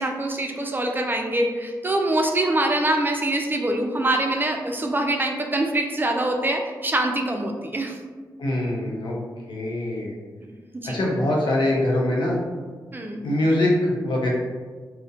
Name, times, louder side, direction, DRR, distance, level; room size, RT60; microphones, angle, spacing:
voice 1, 0.0-8.0 10.7-11.0 12.9-13.2, right 1 dB, 25° right, 3 dB, 0.4 m, -24 dB
voice 2, 8.4-9.1 9.5-10.1 10.8-12.4 13.2-14.3, left 1 dB, 75° left, -3 dB, 0.6 m, -23 dB
2.3 x 2.1 x 2.6 m, 1.5 s
supercardioid pair, 45°, 8 cm